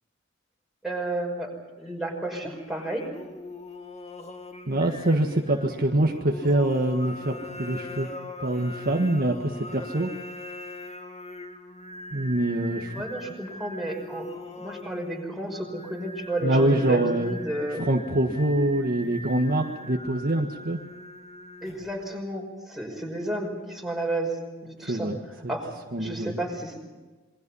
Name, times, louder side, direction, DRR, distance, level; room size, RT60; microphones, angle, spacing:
voice 1, 0.8-1.5 1.8-3.1 12.9-17.8 21.6-24.3 24.6-25.1 25.5-25.7 26.0-26.8, right 1 dB, ahead, 0 dB, 5.6 m, -32 dB
Singing, 2.4-22.0, left 2 dB, 35° left, 2.3 m, -42 dB
voice 2, 4.7-8.1 8.4-10.1 12.1-13.0 16.4-17.4 17.8-20.8 24.9-25.2 25.4-25.5 25.9-26.4, right 1 dB, 45° right, 2 dB, 1.6 m, -24 dB
27.5 x 22.5 x 5.6 m, 1.2 s
head